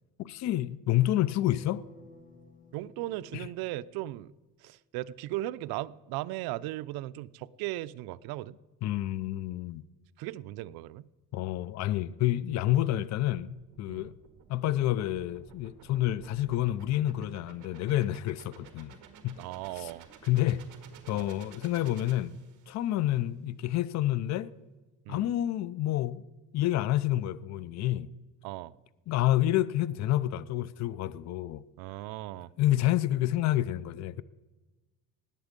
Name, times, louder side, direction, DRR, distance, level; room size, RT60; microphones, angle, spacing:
voice 1, 0.2-1.8 3.3-3.5 8.8-9.8 11.3-14.1 14.5-19.0 19.2-19.4 19.8-19.9 20.2-20.6 21.1-24.5 25.1-26.2 26.5-28.1 29.1-31.6 32.6-34.2, left 14 dB, 50° left, 0.5 m, -29 dB
sound 1, 1.5-4.6, left 2 dB, 20° left, 1.6 m, -55 dB
voice 2, 2.7-4.3 4.6-8.6 10.2-11.1 13.9-14.1 19.4-20.1 21.1-21.3 25.1-25.3 28.4-28.7 31.8-32.5, right 16 dB, 75° right, 0.6 m, -37 dB
sound 2, 13.3-22.9, right 7 dB, 55° right, 1.9 m, -54 dB
19.5 x 8.2 x 5.2 m
cardioid pair, 135°, 37 cm